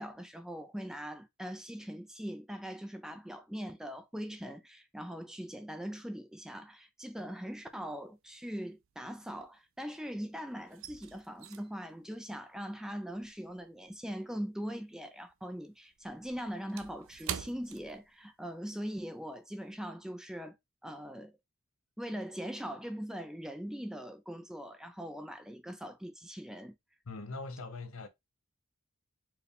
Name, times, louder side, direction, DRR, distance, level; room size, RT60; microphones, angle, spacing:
voice 1, 0.0-20.6 20.8-21.4 22.0-26.8, equal, 5° right, 0.4 m, -41 dB
sound 1, 7.2-7.8 8.1-10.1 10.3-15.0 15.3-18.6 18.9-19.1 19.6-19.8, right 9 dB, 65° right, 0.4 m, -46 dB
voice 2, 27.0-28.1, left 3 dB, 70° left, 0.8 m, -41 dB
4.6 x 2.3 x 3.4 m
head